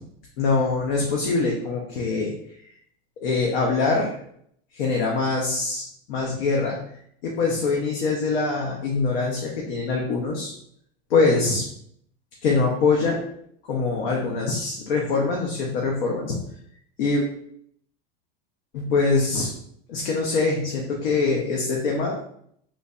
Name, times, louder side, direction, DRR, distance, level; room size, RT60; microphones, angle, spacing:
voice 1, 0.4-2.3 3.2-4.1 4.7-6.8 7.2-10.5 11.1-11.6 12.4-13.3 13.7-16.4 17.0-17.2 18.7-19.5 19.9-22.2, left 3 dB, 75° left, -1 dB, 0.7 m, -23 dB
3.2 x 2.5 x 2.2 m, 0.68 s
supercardioid pair, 175°, 29 cm